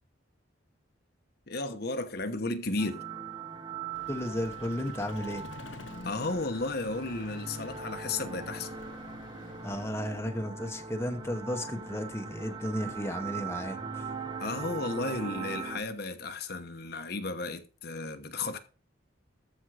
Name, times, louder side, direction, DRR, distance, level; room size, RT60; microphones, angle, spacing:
voice 1, 1.5-3.0 6.0-8.8 14.4-18.6, left 3 dB, 55° left, 1.1 m, -34 dB
sound 1, 2.8-15.8, right 5 dB, 20° right, 1.1 m, -40 dB
Vehicle, 3.9-10.3, left 3 dB, 70° left, 0.7 m, -49 dB
voice 2, 4.1-5.4 9.6-14.1, left 1 dB, 15° left, 1.0 m, -34 dB
14.0 x 5.4 x 4.9 m
head